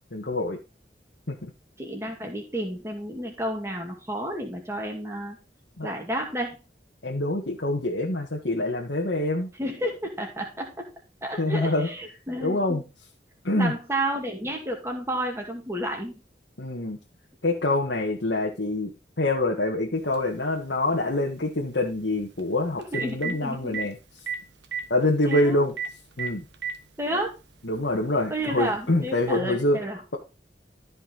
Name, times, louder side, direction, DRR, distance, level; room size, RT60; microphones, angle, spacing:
voice 1, 0.1-0.6 1.3-1.5 5.8-5.9 7.0-9.5 11.4-11.9 12.4-12.8 13.4-13.7 16.6-17.0 17.4-18.9 19.2-24.0 24.9-25.7 26.2-26.4 27.6-29.8, left 2 dB, 75° left, -2 dB, 1.6 m, -25 dB
voice 2, 1.8-5.4 5.8-6.6 9.6-10.9 11.2-12.8 13.6-16.1 22.9-23.8 25.2-25.6 27.0-27.3 28.3-30.0, right 1 dB, 15° right, 1 dB, 2.4 m, -31 dB
Telephone, 20.1-20.2 22.4-22.5 22.8-23.3 23.7-23.8 24.3-24.4 24.6-24.8 25.3-25.4 25.8-25.9 26.2-26.8 27.7-27.8 29.3-29.4, right 6 dB, 80° right, 1.2 m, -30 dB
13.5 x 5.5 x 4.0 m, 0.29 s
head